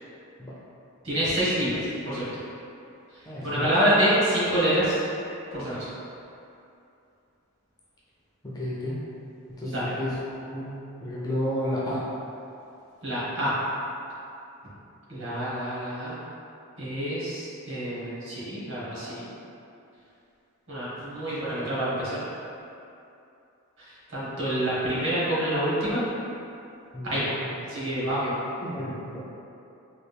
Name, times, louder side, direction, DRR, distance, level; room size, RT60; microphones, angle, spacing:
voice 1, 1.0-2.2 3.4-5.0 5.5-5.9 9.7-9.9 13.0-13.6 15.1-16.1 16.8-19.2 20.7-22.2 23.8-26.0 27.0-27.3 27.6-28.3, right 1 dB, 55° right, -9 dB, 1.1 m, -27 dB
voice 2, 3.3-3.7 8.4-9.1 9.5-12.1 26.9-27.2 28.6-29.2, left 1 dB, 15° left, -7 dB, 0.4 m, -32 dB
3.2 x 2.4 x 3.3 m, 2.7 s
head